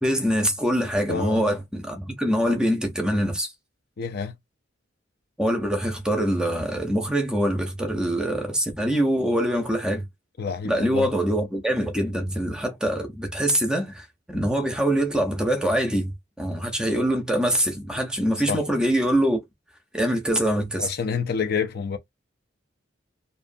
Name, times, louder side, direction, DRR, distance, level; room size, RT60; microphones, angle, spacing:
voice 1, 0.0-3.5 5.4-10.1 10.6-19.4 19.9-20.9, equal, 5° right, 0.6 m, -24 dB
voice 2, 1.1-1.4 4.0-4.3 10.4-11.1 18.5-18.6 20.8-22.0, left 6 dB, 50° left, 0.4 m, -28 dB
2.6 x 2.4 x 2.5 m
head